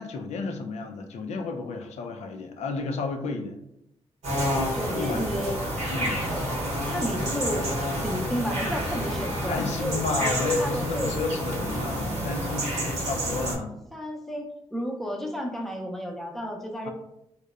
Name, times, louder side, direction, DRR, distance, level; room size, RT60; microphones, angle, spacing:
voice 1, 0.0-3.6 4.9-5.4 5.9-6.2 9.5-13.8 16.8-16.9, left 4 dB, 80° left, 5 dB, 0.4 m, -31 dB
sound 1, 4.2-13.6, equal, 80° right, 0.8 m, -29 dB
voice 2, 4.7-5.9 6.3-7.7 8.0-10.3 10.6-11.2 13.9-16.9, equal, ahead, 1 dB, 0.5 m, -32 dB
2.8 x 2.0 x 2.3 m, 0.82 s
cardioid pair, 80°, 11 cm